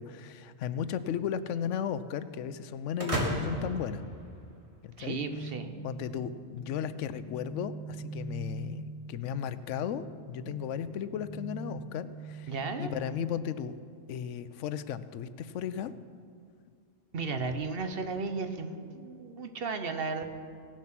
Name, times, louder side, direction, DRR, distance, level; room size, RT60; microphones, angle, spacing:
voice 1, 0.0-4.0 4.8-5.2 5.8-13.8 14.1-15.9, left 8 dB, 90° left, 14 dB, 0.9 m, -35 dB
sound 1, 3.0-4.9, right 1 dB, 30° right, 1.7 m, -34 dB
voice 2, 5.0-5.7 12.5-12.9 17.1-20.2, right 4 dB, 55° right, 7 dB, 1.0 m, -34 dB
sound 2, 5.3-13.7, right 2 dB, 25° left, 0.4 m, -43 dB
17.5 x 7.4 x 5.9 m, 2.2 s
omnidirectional pair, 1.2 m